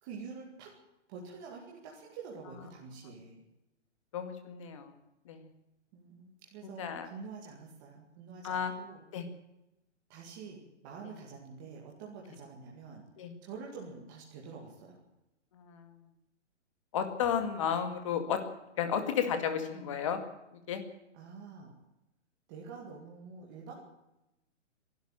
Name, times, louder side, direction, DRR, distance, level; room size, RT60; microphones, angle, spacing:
voice 1, 0.0-0.7 1.1-3.4 5.9-9.0 10.1-13.0 13.4-15.0 19.7-19.9 21.1-21.7 22.5-23.8, right 5 dB, 15° right, -2 dB, 2.2 m, -47 dB
voice 2, 4.1-4.9 5.3-5.5 6.8-7.1 8.4-8.7 9.1-9.3 13.2-13.3 15.5-15.9 16.9-18.4 18.8-20.2 20.7-20.8, left 8 dB, 25° left, 7 dB, 2.2 m, -32 dB
24.5 x 12.0 x 8.9 m, 0.93 s
hypercardioid pair, 175°, 36 cm